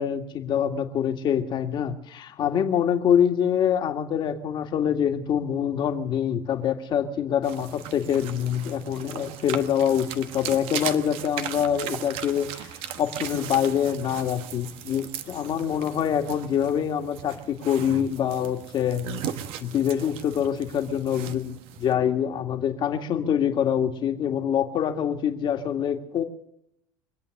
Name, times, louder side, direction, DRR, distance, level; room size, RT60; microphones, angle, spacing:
voice 1, 0.0-12.7 13.0-19.1 19.6-26.2, left 9 dB, 50° left, 5 dB, 2.0 m, -25 dB
sound 1, 7.4-21.9, right 10 dB, 65° right, 1.2 m, -38 dB
25.0 x 8.5 x 6.5 m, 0.76 s
hypercardioid pair, 70°, 11 cm